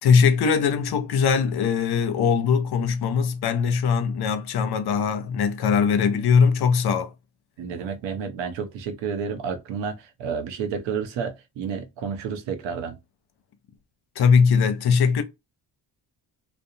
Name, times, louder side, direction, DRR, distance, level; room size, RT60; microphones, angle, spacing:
voice 1, 0.0-7.1 14.2-15.2, left 6 dB, 60° left, 0.7 m, -21 dB
voice 2, 7.6-13.0, right 6 dB, 90° right, 0.7 m, -30 dB
2.5 x 2.0 x 2.7 m
supercardioid pair, 60°, 43 cm